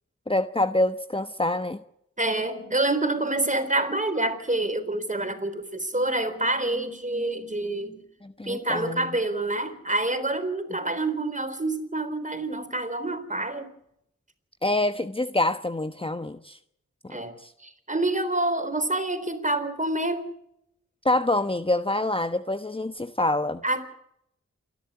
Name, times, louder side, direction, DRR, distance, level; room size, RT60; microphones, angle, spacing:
voice 1, 0.3-1.8 8.2-9.1 14.6-16.6 17.0-17.5 21.0-23.6, left 2 dB, 20° left, 10 dB, 1.1 m, -26 dB
voice 2, 2.2-8.0 8.4-13.7 17.1-17.3 17.6-20.3 23.6-23.9, right 2 dB, 25° right, 10 dB, 3.9 m, -27 dB
28.0 x 11.5 x 9.7 m, 0.78 s
cardioid pair, 50°, 29 cm